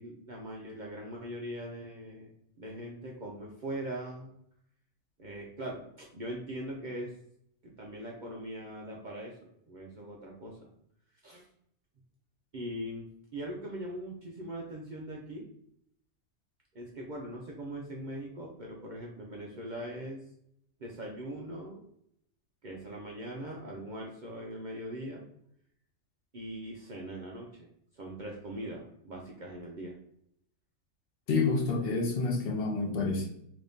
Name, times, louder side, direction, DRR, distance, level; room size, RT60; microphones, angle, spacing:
voice 1, 0.0-4.3 5.2-7.1 7.6-10.7 11.2-11.4 12.5-15.5 16.7-20.2 20.8-21.8 22.6-25.2 26.3-27.7 27.9-30.0, right 1 dB, 65° right, -1 dB, 0.4 m, -41 dB
voice 2, 31.3-33.3, left 3 dB, 55° left, 1 dB, 0.7 m, -28 dB
3.1 x 2.6 x 3.4 m, 0.71 s
omnidirectional pair, 1.5 m